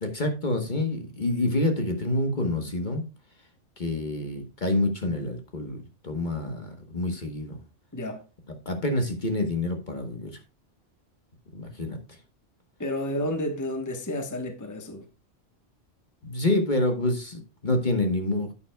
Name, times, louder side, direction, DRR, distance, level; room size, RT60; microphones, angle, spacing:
voice 1, 0.0-3.0 3.8-5.8 6.0-7.6 8.6-10.3 11.5-12.0 16.2-18.5, left 2 dB, 40° left, 1.3 m, -27 dB
voice 2, 12.8-15.0, left 1 dB, 15° left, 1.1 m, -31 dB
11.0 x 8.8 x 2.2 m
omnidirectional pair, 1.2 m